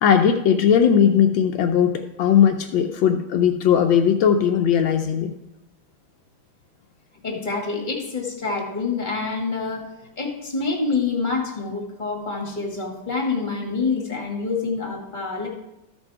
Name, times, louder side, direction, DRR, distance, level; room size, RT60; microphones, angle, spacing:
voice 1, 0.0-5.3, left 8 dB, 75° left, 5 dB, 1.3 m, -18 dB
voice 2, 7.2-9.9 10.2-15.5, left 4 dB, 25° left, 1 dB, 1.5 m, -26 dB
13.5 x 5.3 x 4.6 m, 0.90 s
omnidirectional pair, 2.2 m